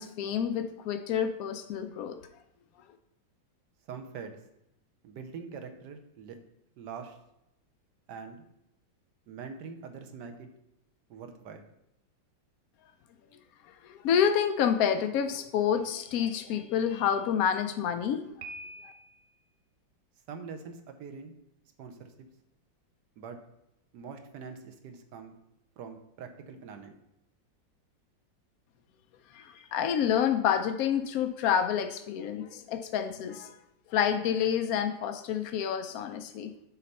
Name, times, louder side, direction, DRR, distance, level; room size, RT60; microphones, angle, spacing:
voice 1, 0.0-2.2 13.8-18.2 29.3-33.6 33.9-36.5, left 8 dB, 80° left, 8 dB, 0.8 m, -28 dB
voice 2, 3.9-4.4 5.0-6.4 6.8-7.2 8.1-8.4 9.3-10.5 11.1-11.6 20.3-21.3 21.8-22.1 23.2-23.4 23.9-25.3 25.8-26.9, right 5 dB, 70° right, 6 dB, 1.2 m, -43 dB
Piano, 18.4-19.4, right 2 dB, 85° right, 1.5 m, -44 dB
6.6 x 4.1 x 5.3 m, 0.83 s
omnidirectional pair, 2.1 m